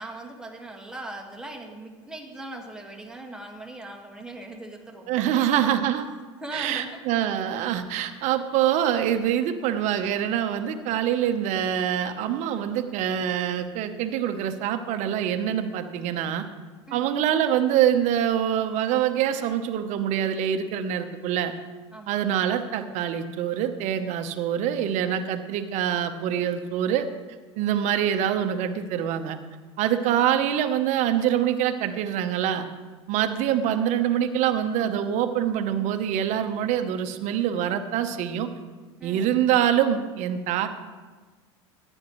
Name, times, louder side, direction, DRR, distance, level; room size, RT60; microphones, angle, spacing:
voice 1, 0.0-5.7 6.4-7.0 16.9-17.1 21.9-22.2 39.0-39.3, right 2 dB, 5° right, 1 dB, 1.7 m, -39 dB
voice 2, 5.1-6.0 6.5-16.5 16.9-21.5 22.1-27.1 27.6-29.4 29.8-32.7 33.1-38.5 39.0-40.7, right 10 dB, 55° right, 8 dB, 0.9 m, -25 dB
14.5 x 9.8 x 3.2 m, 1.3 s
hypercardioid pair, 90°, 15 cm